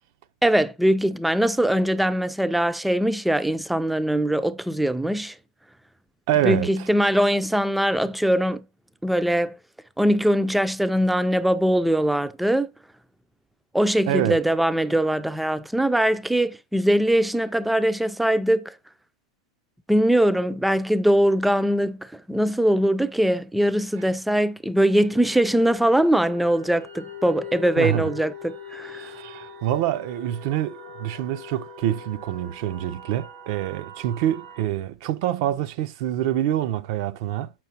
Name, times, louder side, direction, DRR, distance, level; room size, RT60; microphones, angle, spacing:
voice 1, 0.4-5.4 6.4-8.7 9.0-9.6 10.0-12.7 13.7-18.7 19.9-29.1, right 1 dB, ahead, 0.4 m, -22 dB
voice 2, 6.3-6.9 14.1-14.4 27.8-28.1 29.0-37.5, right 12 dB, 60° right, 0.5 m, -26 dB
sound 1, 24.9-34.7, left 4 dB, 85° right, 2.1 m, -41 dB
6.5 x 5.9 x 2.7 m
supercardioid pair, 130°, 3 cm